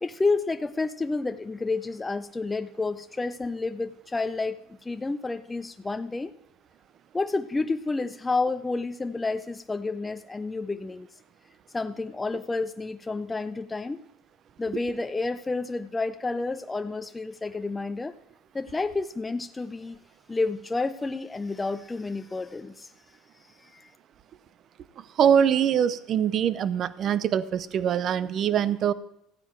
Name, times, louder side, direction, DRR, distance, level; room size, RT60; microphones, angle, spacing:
voice 1, 0.0-6.3 7.1-11.1 11.7-14.0 14.6-18.1 18.5-20.0 20.3-22.9 23.6-23.9, left 3 dB, 15° left, 9 dB, 0.4 m, -30 dB
voice 2, 25.2-28.9, right 8 dB, 45° right, 17 dB, 0.6 m, -23 dB
14.5 x 9.0 x 4.4 m, 0.81 s
supercardioid pair, 105°, 0 cm